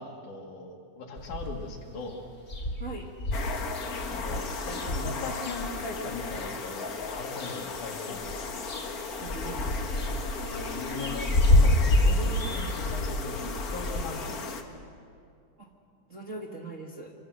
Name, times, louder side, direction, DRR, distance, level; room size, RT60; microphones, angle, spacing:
voice 1, 0.0-2.2 4.1-8.4 10.4-15.0, left 3 dB, 75° left, 1 dB, 3.7 m, -39 dB
sound 1, 1.2-1.8 2.1-2.2 2.4-6.5 7.0-7.9 8.1-14.0, left 1 dB, 25° left, 2.3 m, -28 dB
sound 2, 3.3-14.6, left 4 dB, 40° left, 1.3 m, -36 dB
voice 2, 9.2-10.1 15.6-15.7 16.1-17.1, right 2 dB, 35° right, -1 dB, 1.3 m, -41 dB
26.5 x 24.5 x 6.4 m, 2.3 s
omnidirectional pair, 3.5 m